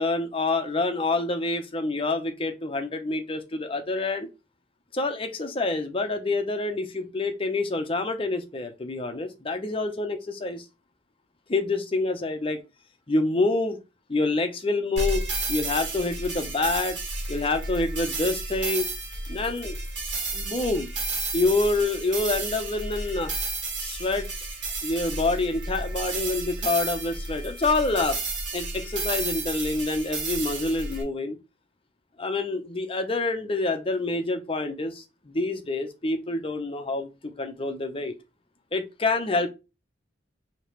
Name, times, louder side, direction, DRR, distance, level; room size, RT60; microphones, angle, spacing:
voice 1, 0.0-4.3 4.9-10.6 11.5-12.6 13.1-13.8 14.1-17.0 17.3-18.9 19.3-19.8 20.3-20.9 21.3-23.3 23.8-24.3 24.8-28.2 28.5-31.4 32.2-37.1 37.4-38.1 38.7-39.5, left 2 dB, 30° left, 0.6 m, -27 dB
sound 1, 15.0-31.0, right 2 dB, 65° right, 1.7 m, -32 dB
4.8 x 2.9 x 3.1 m
head